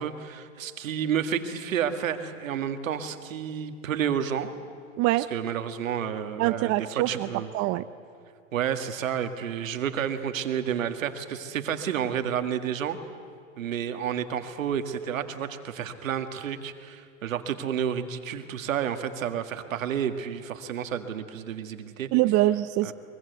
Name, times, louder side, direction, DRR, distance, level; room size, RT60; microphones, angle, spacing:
voice 1, 0.0-4.5 5.2-7.5 8.5-13.0 13.6-22.1 22.8-22.9, right 8 dB, 85° right, 8 dB, 1.9 m, -30 dB
voice 2, 5.0-5.3 6.4-7.3 7.5-7.8 22.1-22.9, right 16 dB, 40° right, 12 dB, 0.7 m, -24 dB
23.0 x 23.0 x 8.1 m, 2.3 s
hypercardioid pair, 120°, 39 cm